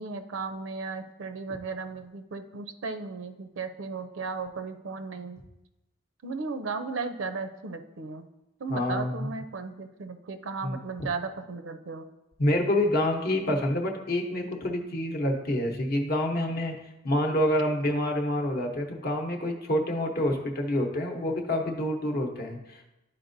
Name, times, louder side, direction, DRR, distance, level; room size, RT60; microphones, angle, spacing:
voice 1, 0.0-5.4 6.2-8.3 8.6-12.1, right 4 dB, 75° right, 8 dB, 0.5 m, -35 dB
voice 2, 8.7-9.3 10.6-10.8 12.4-16.8 17.0-22.9, left 1 dB, 50° left, 2 dB, 0.8 m, -27 dB
10.0 x 4.3 x 2.6 m, 0.94 s
head